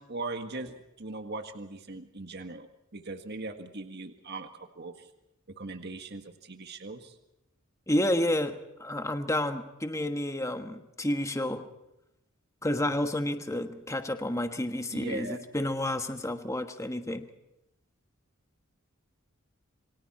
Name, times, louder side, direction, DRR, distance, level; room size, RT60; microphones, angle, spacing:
voice 1, 0.0-2.7 2.9-4.5 4.8-5.1 5.6-7.1 14.9-15.4, right 2 dB, 50° right, 6 dB, 1.7 m, -39 dB
voice 2, 7.9-11.7 12.6-17.3, left 1 dB, 15° left, 7 dB, 1.4 m, -30 dB
28.0 x 24.5 x 4.3 m, 0.90 s
head